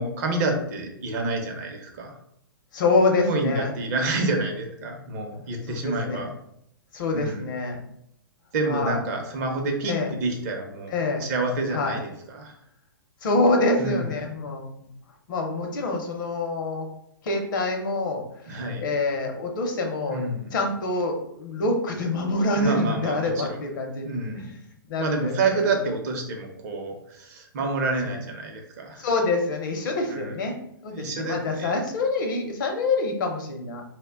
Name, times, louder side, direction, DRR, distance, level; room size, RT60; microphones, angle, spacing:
voice 1, 0.0-2.2 3.3-6.3 7.1-7.5 8.5-12.5 13.8-14.1 18.5-18.8 20.1-20.5 22.5-23.6 24.0-24.4 24.9-29.1 30.1-30.3 30.9-31.7, right 2 dB, 45° right, 3 dB, 0.6 m, -28 dB
voice 2, 2.7-3.8 5.7-6.3 6.9-7.8 8.6-9.0 9.9-10.1 10.9-11.2 11.7-12.0 13.2-14.9 15.3-16.9 17.2-20.2 20.5-24.6 24.9-25.7 28.0-28.1 29.0-30.6 30.8-33.8, left 2 dB, 55° left, 3 dB, 0.6 m, -26 dB
2.1 x 2.1 x 3.5 m, 0.73 s
hypercardioid pair, 125°, 12 cm